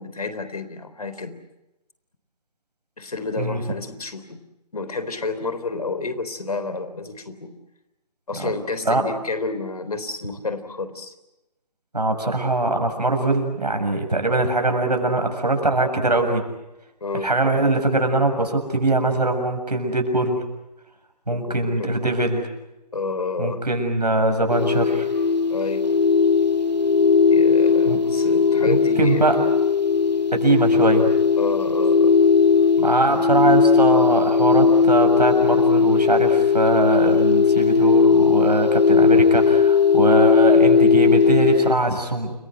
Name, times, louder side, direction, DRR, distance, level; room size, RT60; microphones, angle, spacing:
voice 1, 0.0-1.4 3.0-4.4 4.7-7.5 8.3-11.1 17.0-17.3 21.3-22.0 22.9-23.6 25.5-25.9 27.3-29.3 31.4-32.2 33.1-33.3, left 3 dB, 60° left, 11 dB, 3.8 m, -30 dB
voice 2, 11.9-16.4 17.2-20.4 21.3-22.5 23.4-25.1 27.9-28.0 28.6-29.4 30.3-31.0 32.8-42.3, right 2 dB, 75° right, 5 dB, 7.1 m, -22 dB
sound 1, 24.5-41.7, left 5 dB, 90° left, 2.6 m, -17 dB
30.0 x 22.0 x 7.9 m, 0.95 s
figure-of-eight pair, 145°, 21 cm